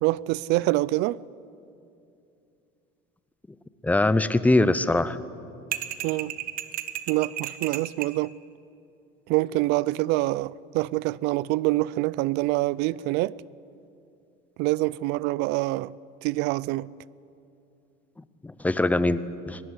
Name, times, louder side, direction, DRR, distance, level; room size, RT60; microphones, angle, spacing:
voice 1, 0.0-1.2 6.0-6.3 7.1-8.3 9.3-13.4 14.6-15.9 16.2-16.9, right 19 dB, 65° right, 0.5 m, -25 dB
voice 2, 3.8-5.2 18.4-19.6, left 2 dB, 10° left, 0.7 m, -22 dB
sound 1, 5.7-8.2, right 12 dB, 50° right, 1.3 m, -33 dB
22.5 x 19.5 x 9.9 m
cardioid pair, 140°, 19 cm